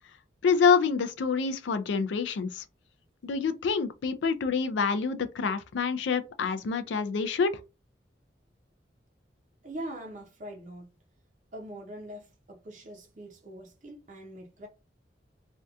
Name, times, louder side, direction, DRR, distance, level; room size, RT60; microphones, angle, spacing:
voice 1, 0.4-2.6 3.2-7.6, left 5 dB, 85° left, 0.4 m, -27 dB
voice 2, 9.6-10.9 11.5-14.7, right 1 dB, 45° right, 0.5 m, -42 dB
2.6 x 2.2 x 2.4 m
head